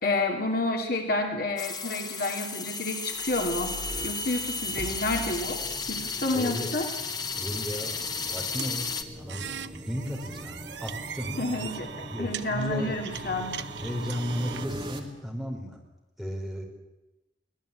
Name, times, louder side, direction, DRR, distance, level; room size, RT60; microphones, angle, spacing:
voice 1, 0.0-6.9 11.4-13.6, left 2 dB, 50° left, 3 dB, 2.7 m, -30 dB
sound 1, 1.6-9.0, left 4 dB, 20° left, 1.5 m, -34 dB
sound 2, 2.9-15.0, equal, 25° right, 2.8 m, -42 dB
voice 2, 6.3-6.7 7.4-9.5 9.7-11.4 12.1-13.0 13.8-15.8 16.2-16.6, equal, ahead, 0 dB, 4.6 m, -34 dB
sound 3, 8.6-14.6, right 7 dB, 65° right, 0.9 m, -39 dB
23.0 x 18.0 x 8.7 m, 0.98 s
head